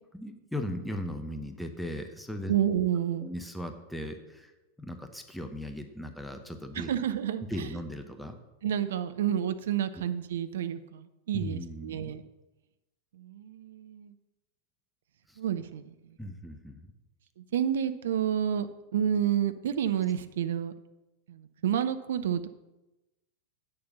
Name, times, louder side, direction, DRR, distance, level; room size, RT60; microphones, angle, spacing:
voice 1, 0.1-2.5 3.2-4.5 4.8-6.9 7.5-8.4 11.3-12.1 15.3-15.4 16.2-16.9, left 1 dB, ahead, 6 dB, 0.9 m, -38 dB
voice 2, 2.5-3.3 6.7-7.7 8.6-12.2 13.1-14.1 15.4-16.2 17.4-18.7 18.9-20.7 21.3-22.5, right 9 dB, 60° right, 11 dB, 0.6 m, -30 dB
8.7 x 6.9 x 5.5 m, 0.99 s
figure-of-eight pair, 90°, 0 cm